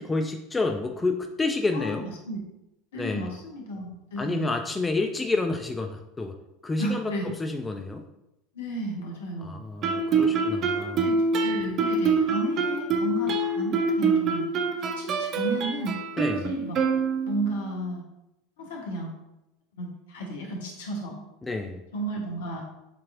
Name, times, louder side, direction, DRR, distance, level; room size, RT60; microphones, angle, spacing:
voice 1, 0.0-2.0 3.0-3.3 4.2-6.4 6.6-7.1 7.4-8.0 9.4-11.1 16.2-16.5 21.4-21.8, left 3 dB, 15° left, 5 dB, 0.4 m, -29 dB
voice 2, 1.7-2.4 2.9-4.6 6.8-7.3 8.5-9.7 11.0-14.5 14.8-16.0 16.3-16.8 17.2-18.0 18.6-19.1 19.8-21.2 21.9-22.6, right 1 dB, 65° left, 0 dB, 1.1 m, -33 dB
Guitar, 9.8-17.5, right 4 dB, 40° right, 0.5 m, -25 dB
7.0 x 3.0 x 2.5 m, 0.91 s
figure-of-eight pair, 75°, 0 cm